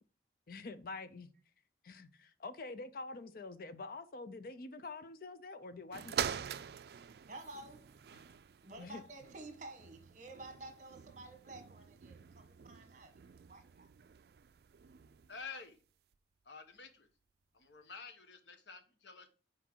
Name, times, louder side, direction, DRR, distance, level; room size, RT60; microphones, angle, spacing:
voice 1, 0.5-1.3 1.8-6.5 8.1-8.3 8.8-9.0, left 3 dB, 50° left, 0.5 m, -46 dB
sound 1, 5.9-15.5 16.1-16.2, right 8 dB, 60° right, 0.3 m, -45 dB
voice 2, 7.3-8.0 8.6-13.9, right 2 dB, 45° right, 1.3 m, -51 dB
voice 3, 15.3-15.8 16.4-17.1 17.5-19.3, left 5 dB, 80° left, 1.1 m, -50 dB
6.1 x 4.5 x 4.4 m
head